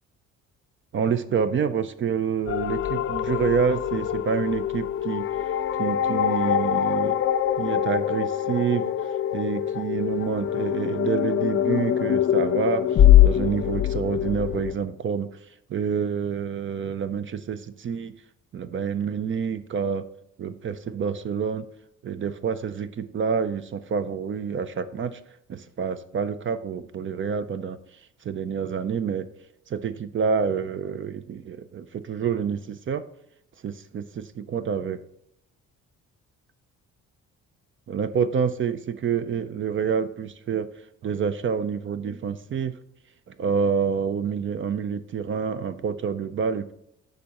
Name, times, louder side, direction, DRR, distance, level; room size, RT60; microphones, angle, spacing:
voice 1, 0.9-5.3 5.8-7.2 7.6-15.3 15.7-18.2 18.5-20.0 20.4-21.7 22.0-25.2 25.5-27.8 28.2-29.3 29.7-33.0 33.6-35.0 37.9-40.7 41.0-42.8 43.3-46.7, right 6 dB, 40° right, 13 dB, 0.5 m, -28 dB
sound 1, 2.5-14.8, left 11 dB, 40° left, 0.4 m, -23 dB
8.3 x 5.3 x 2.9 m, 0.76 s
cardioid pair, 90°, 30 cm